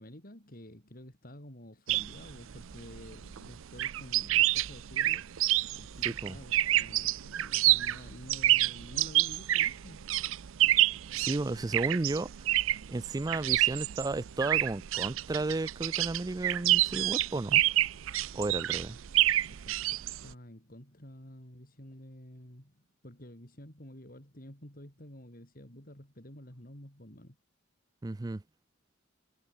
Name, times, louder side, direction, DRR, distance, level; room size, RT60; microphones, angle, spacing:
voice 1, 0.0-10.1 18.7-18.8 19.5-27.4, equal, 45° left, 6.1 m, -50 dB
sound 1, 1.9-20.3, right 15 dB, 75° right, 0.5 m, -28 dB
voice 2, 6.0-6.4 11.1-12.5 12.9-17.6 18.3-19.0 28.0-28.4, right 2 dB, 20° right, 0.4 m, -33 dB
head